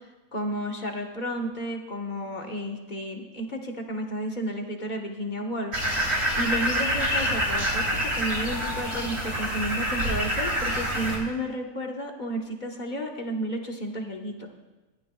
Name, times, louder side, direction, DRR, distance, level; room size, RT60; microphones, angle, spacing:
voice 1, 0.3-14.5, right 1 dB, 35° left, 2 dB, 1.4 m, -32 dB
sound 1, 5.7-11.2, equal, 45° right, 3.5 m, -27 dB
21.0 x 14.5 x 2.4 m, 1.2 s
omnidirectional pair, 1.5 m